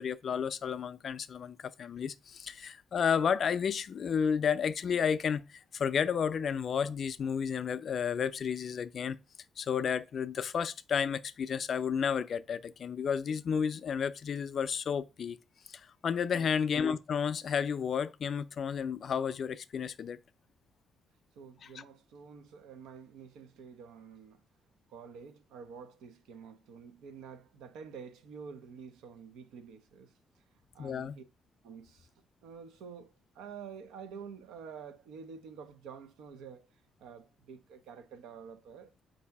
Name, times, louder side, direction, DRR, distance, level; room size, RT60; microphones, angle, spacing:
voice 1, 0.0-9.2 9.6-15.4 15.7-20.2 21.7-21.8 30.8-31.2, left 7 dB, 55° left, 0.3 m, -32 dB
voice 2, 21.4-24.4 24.9-30.1 30.7-31.2 31.6-32.1 32.4-36.7 37.0-38.9, right 6 dB, 90° right, 0.6 m, -49 dB
4.7 x 2.7 x 3.4 m
cardioid pair, 90°, 0 cm